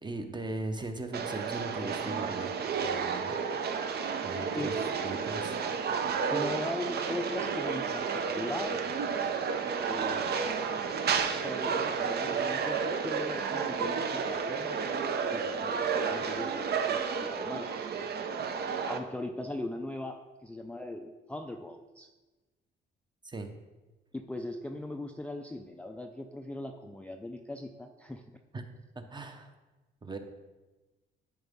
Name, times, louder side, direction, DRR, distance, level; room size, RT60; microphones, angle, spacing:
voice 1, 0.0-3.3 4.2-4.7 5.0-5.6 23.2-23.5 28.5-28.6 28.9-29.5 30.0-30.2, right 2 dB, 20° right, 6 dB, 0.8 m, -38 dB
sound 1, 1.1-19.0, right 6 dB, 55° right, 0.7 m, -31 dB
voice 2, 6.3-8.1 8.3-8.8 9.9-10.3 11.2-14.8 15.3-17.8 18.9-22.1 24.1-28.2, left 1 dB, 5° left, 3 dB, 0.4 m, -39 dB
10.5 x 4.1 x 3.5 m, 1.2 s
cardioid pair, 90°, 20 cm